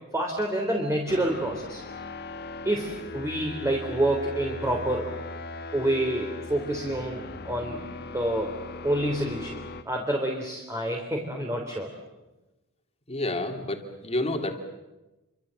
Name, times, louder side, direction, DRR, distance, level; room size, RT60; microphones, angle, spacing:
voice 1, 0.1-1.8 2.6-5.1 5.7-7.8 8.1-8.5 8.8-9.6 9.9-11.9, right 1 dB, 15° right, 1 dB, 3.5 m, -28 dB
sound 1, 1.1-9.8, left 2 dB, 50° left, 1.8 m, -39 dB
voice 2, 13.1-14.6, left 1 dB, 30° left, 4 dB, 3.0 m, -30 dB
29.0 x 25.0 x 7.7 m, 1.0 s
head